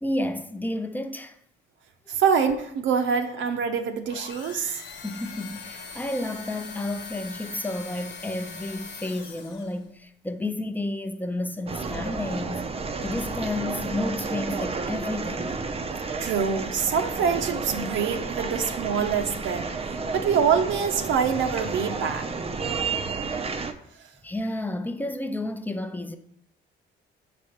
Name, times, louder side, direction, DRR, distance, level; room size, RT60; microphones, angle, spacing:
voice 1, 0.0-1.4 5.0-15.6 22.6-22.8 24.2-26.2, left 1 dB, 10° left, 0.7 m, -31 dB
voice 2, 2.1-4.8 16.2-19.8 20.1-22.3, right 6 dB, 75° right, 0.8 m, -25 dB
sound 1, 4.0-9.9, left 5 dB, 70° left, 1.3 m, -41 dB
sound 2, 11.7-23.7, right 4 dB, 30° right, 0.6 m, -31 dB
6.2 x 4.3 x 6.4 m
cardioid pair, 90°, 20 cm